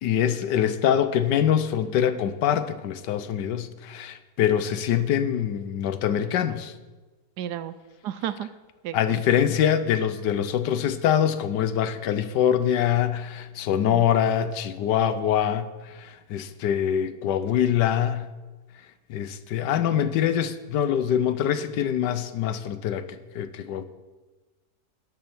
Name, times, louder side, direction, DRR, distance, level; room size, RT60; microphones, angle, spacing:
voice 1, 0.0-6.7 8.9-18.3 19.1-23.1 23.3-23.8, left 9 dB, 80° left, 1.4 m, -24 dB
voice 2, 7.4-7.7 8.0-8.5 8.8-9.2 13.7-14.1, right 11 dB, 75° right, 1.1 m, -33 dB
12.5 x 7.7 x 6.1 m
omnidirectional pair, 1.8 m